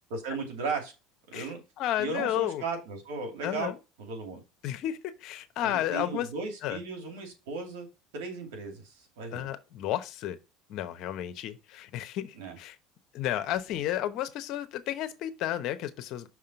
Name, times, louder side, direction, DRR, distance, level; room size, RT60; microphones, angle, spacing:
voice 1, 0.1-0.9 1.3-1.6 2.0-3.7 4.0-4.4 5.6-7.9 8.1-9.5 12.3-12.6, right 4 dB, 85° right, 2.4 m, -36 dB
voice 2, 1.8-2.6 3.4-3.8 4.6-6.3 6.6-6.8 9.3-10.4 10.7-12.7 13.1-16.3, left 12 dB, 55° left, 0.9 m, -32 dB
6.1 x 3.7 x 5.8 m
supercardioid pair, 115°, 0 cm